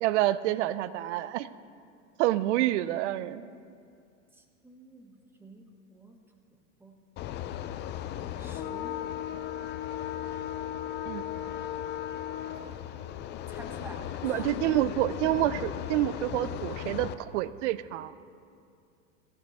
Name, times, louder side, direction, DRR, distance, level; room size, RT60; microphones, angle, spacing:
voice 1, 0.0-1.5 2.2-3.4 11.1-11.2 14.2-18.1, right 14 dB, 65° right, 16 dB, 0.6 m, -28 dB
voice 2, 4.3-6.2 6.8-7.0 8.4-9.2 13.5-14.5, right 1 dB, 5° right, 3 dB, 1.3 m, -49 dB
sound 1, 7.2-17.1, left 11 dB, 30° left, 0.5 m, -36 dB
15.5 x 14.5 x 3.6 m, 2.4 s
supercardioid pair, 125°, 39 cm